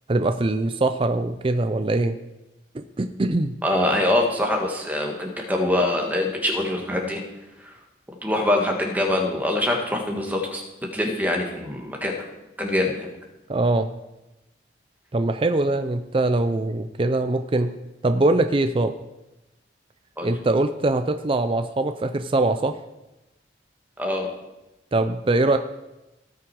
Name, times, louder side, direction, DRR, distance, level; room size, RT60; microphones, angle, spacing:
voice 1, 0.1-2.2 3.0-3.6 13.5-13.9 15.1-17.7 18.0-18.9 20.2-22.8 24.9-25.6, right 2 dB, 30° right, 8 dB, 0.4 m, -22 dB
voice 2, 3.6-7.2 7.6-7.8 8.2-10.6 10.9-12.2 12.6-13.1 20.2-20.3 24.0-24.4, left 1 dB, 10° right, 1 dB, 1.6 m, -24 dB
17.5 x 6.0 x 4.8 m, 0.98 s
head